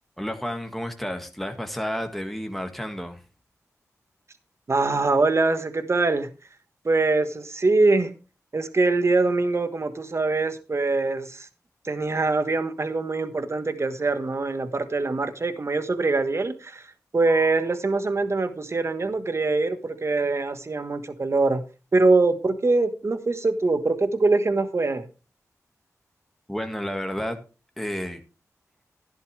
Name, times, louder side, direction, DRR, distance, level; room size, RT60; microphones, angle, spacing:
voice 1, 0.2-3.2 26.5-27.4 27.8-28.2, equal, 5° left, 1.7 m, -31 dB
voice 2, 4.7-6.3 6.8-8.1 8.5-11.5 11.8-16.8 17.1-21.6 21.9-25.1, right 3 dB, 50° right, 1.4 m, -23 dB
11.5 x 11.0 x 3.3 m
cardioid pair, 45°, 6 cm